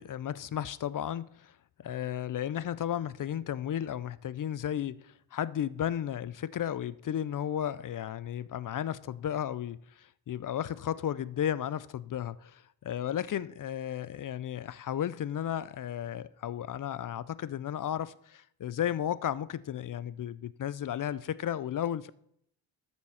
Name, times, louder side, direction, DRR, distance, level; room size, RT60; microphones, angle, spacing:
voice 1, 0.0-22.1, left 10 dB, 45° left, 0.4 m, -34 dB
13.0 x 4.4 x 5.6 m
cardioid pair, 85°, 49 cm